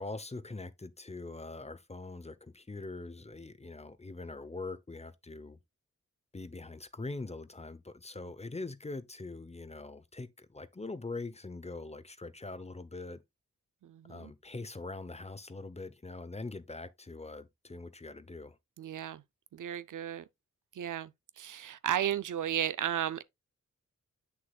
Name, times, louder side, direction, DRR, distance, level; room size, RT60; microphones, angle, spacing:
voice 1, 0.0-5.6 6.3-13.2 14.0-18.6, left 3 dB, 20° left, 0.8 m, -43 dB
voice 2, 13.8-14.3 18.8-19.2 19.5-20.2 20.7-21.1 21.4-23.2, right 10 dB, 75° right, 0.6 m, -34 dB
8.0 x 6.5 x 2.3 m
cardioid pair, 65°, 31 cm